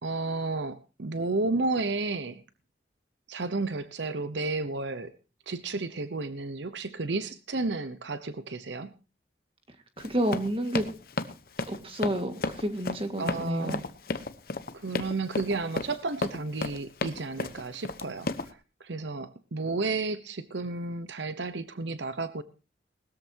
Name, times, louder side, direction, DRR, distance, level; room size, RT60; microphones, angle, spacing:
voice 1, 0.0-2.4 3.3-5.1 5.5-8.9 13.2-13.9 14.7-22.4, right 3 dB, 80° right, 12 dB, 0.9 m, -32 dB
Run, 10.0-18.5, left 3 dB, 50° left, 1.0 m, -33 dB
voice 2, 10.0-10.9 11.7-13.8, equal, 30° right, 6 dB, 1.9 m, -30 dB
20.0 x 13.5 x 2.9 m, 0.32 s
head